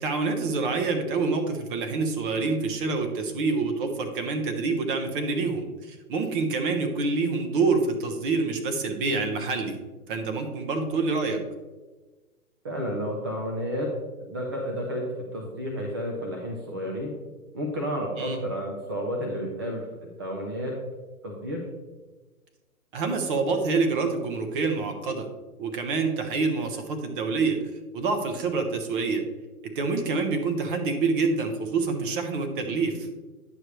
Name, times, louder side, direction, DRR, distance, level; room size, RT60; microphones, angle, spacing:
voice 1, 0.0-9.7 10.1-11.4 18.2-18.4 22.9-25.3 25.6-27.6 27.9-29.2 29.7-33.1, right 4 dB, 35° right, 6 dB, 1.1 m, -27 dB
voice 2, 12.6-13.9 14.2-15.0 15.3-17.1 17.5-19.8 20.2-20.7 21.2-21.6, equal, 15° right, 0 dB, 0.4 m, -31 dB
9.6 x 6.6 x 3.1 m, 1.2 s
hypercardioid pair, 135°, 45 cm